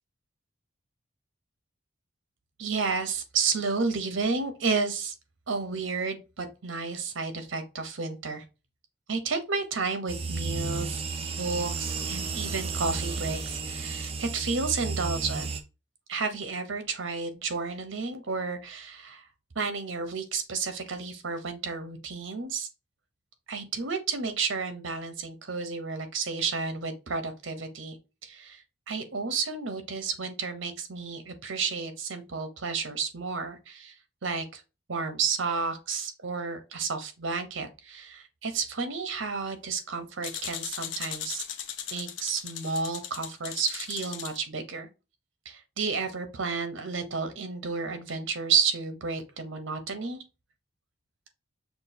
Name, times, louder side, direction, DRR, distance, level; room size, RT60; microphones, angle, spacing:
voice 1, 2.6-5.1 5.5-8.4 9.1-15.5 16.1-19.2 19.5-22.7 23.5-33.9 34.2-34.6 34.9-41.4 41.9-44.9 45.4-50.2, right 4 dB, 80° right, 0.8 m, -31 dB
sound 1, 10.1-15.6, right 4 dB, 30° right, 0.4 m, -33 dB
sound 2, 40.2-44.4, left 9 dB, 70° left, 0.6 m, -38 dB
6.0 x 2.3 x 2.7 m
head